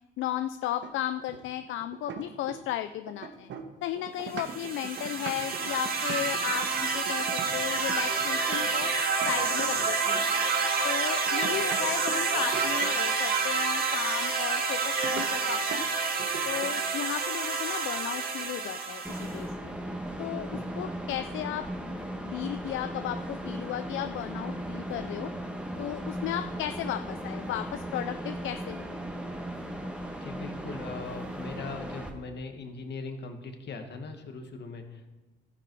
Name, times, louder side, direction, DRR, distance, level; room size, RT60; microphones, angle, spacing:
voice 1, 0.2-3.5 3.8-8.9 9.2-10.2 10.8-15.9 16.4-19.7 20.2-21.9 22.2-25.3 25.8-29.0, left 12 dB, 80° left, 10 dB, 0.5 m, -35 dB
sound 1, 0.8-2.8 3.1-8.9 9.2-10.4 11.3-13.1 15.0-15.3 15.7-15.9 16.2-16.9, right 7 dB, 65° right, 1.3 m, -41 dB
sound 2, 4.3-19.4, right 4 dB, 50° right, 2.1 m, -28 dB
sound 3, 19.0-32.1, right 1 dB, 5° right, 1.7 m, -37 dB
voice 2, 30.2-35.1, left 3 dB, 60° left, 5 dB, 1.7 m, -40 dB
12.5 x 10.0 x 4.8 m, 1.1 s
cardioid pair, 90°, 20 cm